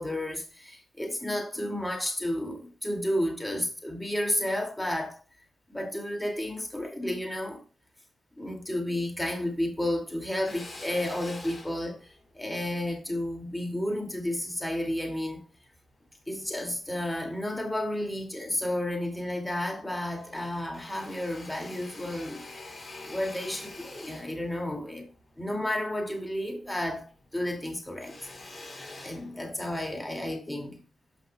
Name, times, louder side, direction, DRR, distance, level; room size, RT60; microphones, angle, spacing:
voice 1, 0.0-5.2 5.7-7.6 8.4-15.4 16.3-22.4 23.1-25.1 25.4-27.1 27.3-28.2 29.0-30.8, left 1 dB, 10° left, 2.2 m, -32 dB
Drill, 10.5-15.0 15.6-16.7 17.2-18.1 18.5-18.6 18.8-19.8 20.1-26.8 27.1-29.9, left 2 dB, 35° left, 3.8 m, -47 dB
12.5 x 5.7 x 2.2 m
supercardioid pair, 50°, 0 cm